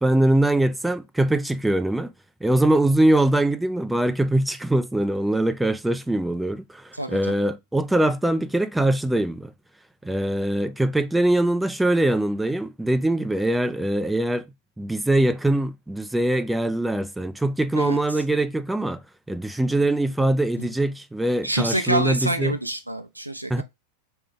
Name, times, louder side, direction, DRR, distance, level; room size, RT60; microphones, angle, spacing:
voice 1, 0.0-2.1 2.4-9.5 10.0-14.4 14.8-19.0 19.3-22.6 23.5-23.6, right 1 dB, 5° right, 0.3 m, -22 dB
voice 2, 6.9-7.3 17.7-18.0 20.6-20.7 21.4-23.6, right 1 dB, 85° right, 0.6 m, -27 dB
3.4 x 3.3 x 3.5 m
figure-of-eight pair, 90°, 0 cm